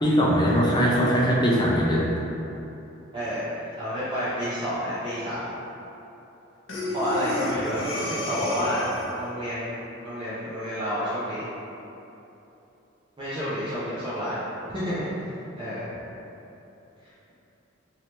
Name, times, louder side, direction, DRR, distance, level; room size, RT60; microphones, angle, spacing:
voice 1, 0.0-2.1, equal, 20° left, -5 dB, 0.5 m, -21 dB
voice 2, 3.1-3.5 3.8-5.5 6.9-8.9 9.1-9.7 10.0-11.5 13.2-14.4 14.7-15.9, equal, 25° right, -12 dB, 0.5 m, -29 dB
Breathing, 6.7-9.3, left 1 dB, 85° left, 0.6 m, -30 dB
3.2 x 2.9 x 2.9 m, 3.0 s
head